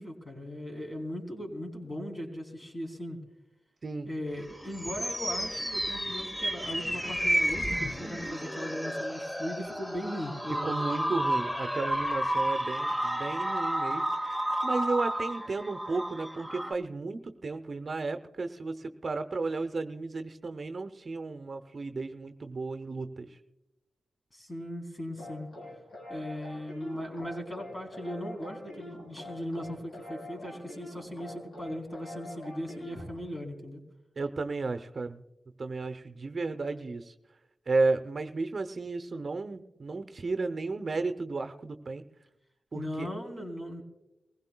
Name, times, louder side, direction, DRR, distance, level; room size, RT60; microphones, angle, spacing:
voice 1, 0.0-3.2 4.1-11.2 24.3-25.5 26.1-33.8 42.7-43.8, equal, 30° left, 1 dB, 3.6 m, -38 dB
sound 1, 4.4-16.7, equal, 10° left, 1.0 m, -31 dB
voice 2, 10.6-23.3 34.2-35.2 35.6-37.1 37.7-42.0 42.7-43.1, right 3 dB, 55° right, 8 dB, 0.7 m, -33 dB
sound 2, 25.2-33.2, left 1 dB, 75° left, 3.9 m, -45 dB
23.0 x 16.0 x 2.3 m, 0.96 s
cardioid pair, 45°, 0 cm